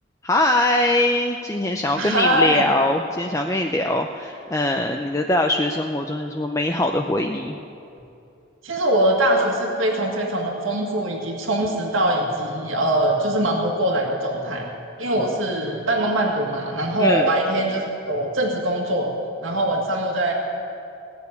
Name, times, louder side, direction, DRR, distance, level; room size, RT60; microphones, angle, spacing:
voice 1, 0.2-7.6 15.2-15.3 17.0-17.3, left 1 dB, 15° left, 3 dB, 0.5 m, -22 dB
voice 2, 2.0-2.6 8.6-14.7 15.0-19.1 19.4-20.3, right 1 dB, 75° right, 0 dB, 1.9 m, -22 dB
17.5 x 6.9 x 9.7 m, 2.7 s
head